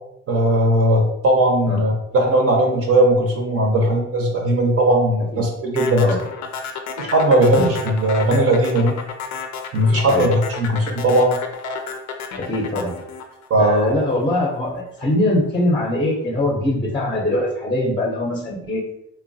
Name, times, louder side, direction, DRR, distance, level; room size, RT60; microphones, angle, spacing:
voice 1, 0.3-6.1 7.0-8.9 9.7-11.3 13.5-13.9, right 1 dB, 50° right, 1 dB, 0.6 m, -18 dB
sound 1, 5.8-14.1, left 5 dB, 65° left, 0.4 m, -31 dB
voice 2, 12.5-12.9 13.6-18.8, left 1 dB, 15° left, -1 dB, 0.5 m, -22 dB
2.9 x 2.1 x 2.6 m, 0.81 s
cardioid pair, 90°, 30 cm